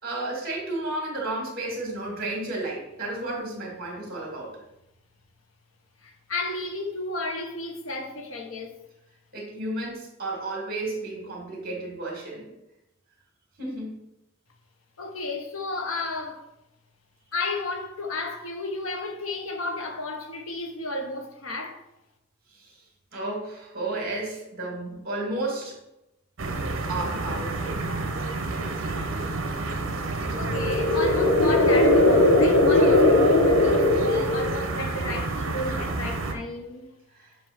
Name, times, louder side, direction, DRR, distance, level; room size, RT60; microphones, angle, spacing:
voice 1, 0.0-4.6 9.3-12.5 13.6-14.0 22.6-22.7 23.1-25.8 26.9-27.8 37.2-37.3, right 2 dB, 45° right, 2.2 m, -32 dB
voice 2, 6.0-8.7 15.0-16.4 17.3-21.8 30.4-36.9, left 2 dB, 80° left, 1.0 m, -33 dB
sound 1, 26.4-36.3, right 3 dB, 70° right, 0.8 m, -30 dB
sound 2, 30.3-34.7, left 2 dB, 60° left, 0.9 m, -19 dB
7.4 x 2.6 x 5.8 m
head